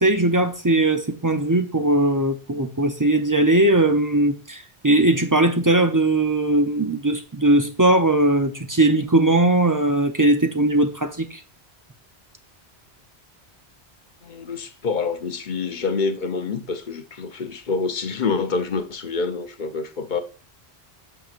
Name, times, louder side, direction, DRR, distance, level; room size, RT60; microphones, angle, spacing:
voice 1, 0.0-11.4, right 2 dB, 25° right, 0.4 m, -19 dB
voice 2, 14.2-20.2, left 4 dB, 50° left, 0.8 m, -27 dB
8.7 x 5.9 x 2.5 m
omnidirectional pair, 1.1 m